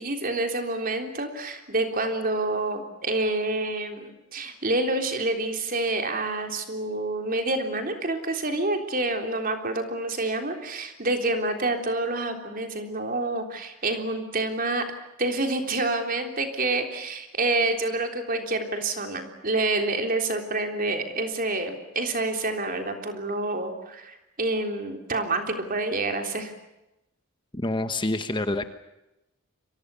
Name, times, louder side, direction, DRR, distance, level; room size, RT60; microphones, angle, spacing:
voice 1, 0.0-14.8 15.2-26.5, right 2 dB, 40° right, 5 dB, 3.6 m, -28 dB
voice 2, 27.5-28.7, left 2 dB, 20° left, 9 dB, 1.2 m, -27 dB
30.0 x 24.0 x 7.0 m, 0.92 s
head